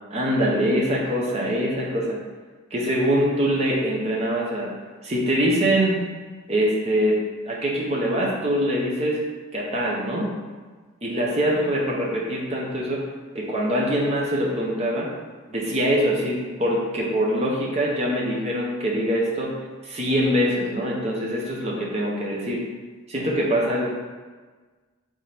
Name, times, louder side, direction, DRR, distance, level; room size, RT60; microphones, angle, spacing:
voice 1, 0.1-2.2 2.7-4.7 5.0-6.0 6.5-7.2 7.4-9.2 9.5-10.3 11.0-13.1 13.3-15.1 15.5-19.5 19.8-22.6 23.1-23.9, equal, 30° right, -3 dB, 0.8 m, -23 dB
4.3 x 3.6 x 3.3 m, 1.4 s
head